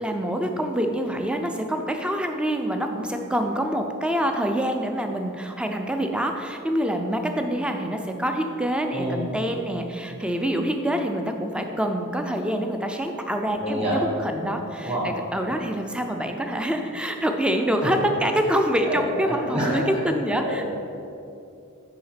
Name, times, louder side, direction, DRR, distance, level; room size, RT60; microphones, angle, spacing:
voice 1, 0.0-20.6, equal, 5° right, 4 dB, 0.4 m, -26 dB
voice 2, 13.6-14.0 14.8-15.0 18.8-19.0 19.3-19.8 20.4-20.7, right 1 dB, 25° right, -5 dB, 1.7 m, -27 dB
5.7 x 5.1 x 5.7 m, 2.6 s
head